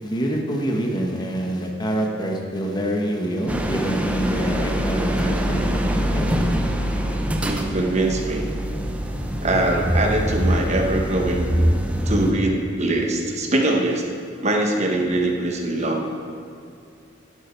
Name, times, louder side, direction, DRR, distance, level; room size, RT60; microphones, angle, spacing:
voice 1, 0.0-6.3, right 1 dB, 20° left, 1 dB, 1.1 m, -26 dB
sound 1, 3.5-12.3, equal, 5° right, 0.7 m, -24 dB
voice 2, 7.4-8.4 9.4-11.5 12.0-14.0 14.4-16.1, right 2 dB, 35° right, 2 dB, 1.1 m, -22 dB
11.0 x 10.5 x 4.5 m, 2.4 s
head